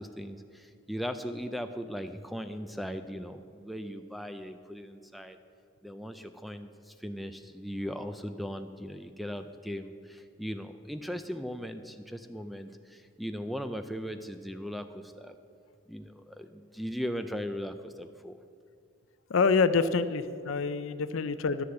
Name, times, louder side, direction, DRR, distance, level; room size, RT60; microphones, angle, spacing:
voice 1, 0.0-5.4 5.8-15.3 15.9-18.4 19.8-19.9, equal, ahead, 8 dB, 0.4 m, -38 dB
voice 2, 19.3-21.6, left 4 dB, 65° left, 13 dB, 0.5 m, -26 dB
11.0 x 6.9 x 7.7 m, 2.3 s
head